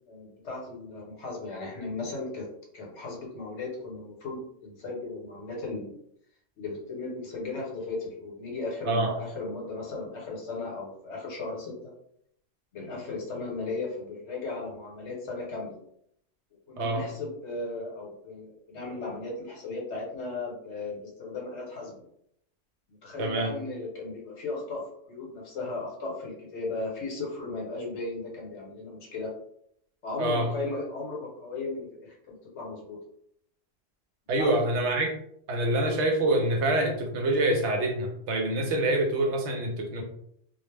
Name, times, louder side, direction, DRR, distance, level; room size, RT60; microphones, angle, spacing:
voice 1, 0.1-2.5 2.7-5.9 6.6-11.9 12.7-15.8 16.7-22.0 23.0-24.8 25.1-29.3 30.0-33.0 34.4-34.6, left 3 dB, 65° left, -2 dB, 1.1 m, -36 dB
voice 2, 23.2-23.5 30.2-30.5 34.3-35.1 35.5-40.0, right 1 dB, 70° right, 2 dB, 0.8 m, -26 dB
2.4 x 2.0 x 3.2 m, 0.70 s
omnidirectional pair, 1.3 m